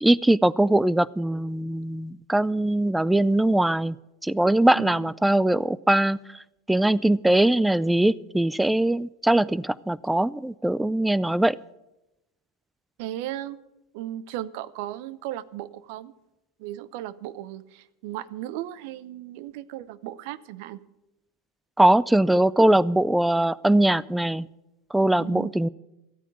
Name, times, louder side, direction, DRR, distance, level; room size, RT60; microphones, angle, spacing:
voice 1, 0.0-4.0 4.2-6.2 6.7-11.6 21.8-24.5 24.9-25.7, right 1 dB, 5° right, 21 dB, 0.4 m, -21 dB
voice 2, 4.7-5.1 13.0-13.6 13.9-16.1 16.6-20.8 25.2-25.5, right 13 dB, 65° right, 18 dB, 0.7 m, -36 dB
14.0 x 9.1 x 8.3 m, 0.92 s
hypercardioid pair, 105°, 0 cm